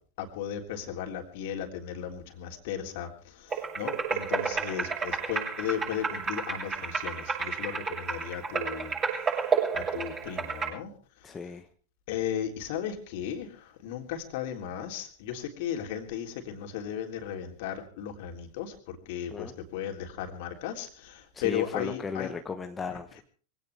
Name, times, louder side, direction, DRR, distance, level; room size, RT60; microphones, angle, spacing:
voice 1, 0.2-9.0 9.7-10.9 12.1-22.3, left 9 dB, 50° left, 4 dB, 3.4 m, -35 dB
sound 1, 3.5-10.7, right 5 dB, 25° right, 7.4 m, -31 dB
voice 2, 11.2-11.6 19.3-19.5 21.3-23.2, left 5 dB, 15° left, 6 dB, 1.2 m, -36 dB
23.0 x 17.5 x 3.5 m, 0.41 s
figure-of-eight pair, 90°, 0 cm